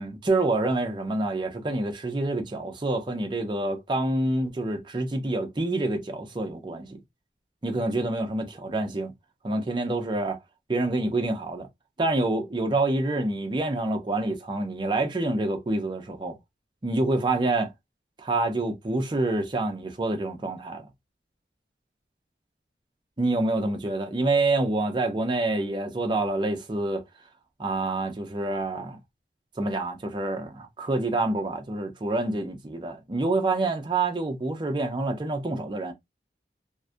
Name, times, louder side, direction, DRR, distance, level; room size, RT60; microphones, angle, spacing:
voice 1, 0.0-7.0 7.6-9.1 9.4-10.4 10.7-11.7 12.0-16.4 16.8-17.7 18.2-20.9 23.2-27.0 27.6-29.0 29.6-35.9, right 2 dB, 25° right, 0.4 m, -27 dB
2.3 x 2.1 x 2.5 m
head